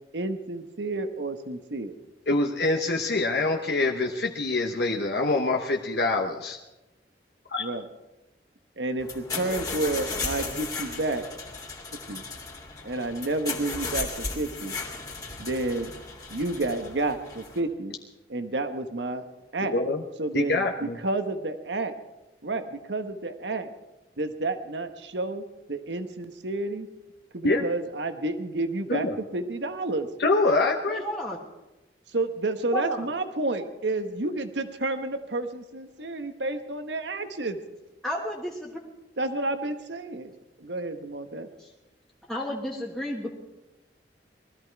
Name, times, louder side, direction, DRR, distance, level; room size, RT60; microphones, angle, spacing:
voice 1, 0.1-2.0 7.6-7.8 8.8-11.3 12.1-12.2 12.8-14.7 15.4-15.9 16.3-18.0 18.3-19.2 19.5-19.8 20.2-21.9 22.4-23.7 24.2-26.9 27.3-29.1 29.3-30.1 32.1-37.6 39.2-40.3 40.6-41.5, right 2 dB, 85° right, 8 dB, 1.2 m, -30 dB
voice 2, 2.3-6.6 7.5-7.7 19.7-20.0 20.3-21.0 27.4-27.7 28.9-29.1 30.2-31.0, left 2 dB, 65° left, 1 dB, 1.0 m, -25 dB
sound 1, 9.0-17.6, left 4 dB, 20° left, 2.4 m, -35 dB
voice 3, 30.9-31.4 32.7-33.1 38.0-38.8 41.6-41.7 42.3-43.3, equal, ahead, -3 dB, 1.3 m, -32 dB
20.0 x 13.5 x 4.7 m, 1.0 s
head